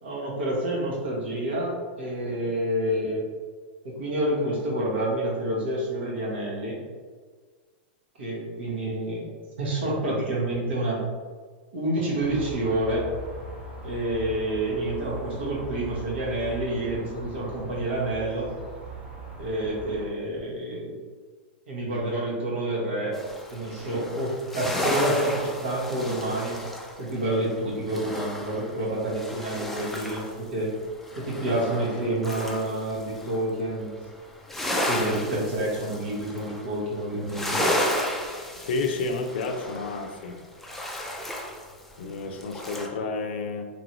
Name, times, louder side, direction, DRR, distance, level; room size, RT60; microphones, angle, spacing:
voice 1, 0.0-3.2 3.8-6.8 8.2-9.3 9.6-11.0 11.7-13.0 13.8-18.5 19.4-20.9 21.7-23.1 23.5-26.6 27.0-30.7 31.2-33.9 34.8-37.6, right 1 dB, 75° right, -5 dB, 1.1 m, -28 dB
sound 1, 12.2-20.0, right 3 dB, 30° right, 1.1 m, -40 dB
sound 2, 23.1-30.4 30.7-33.5 33.8-42.9, left 1 dB, 5° left, 0.4 m, -33 dB
voice 2, 38.7-40.4 42.0-43.7, left 3 dB, 70° left, 5 dB, 0.4 m, -30 dB
2.9 x 2.6 x 2.9 m, 1.5 s
hypercardioid pair, 130°, 6 cm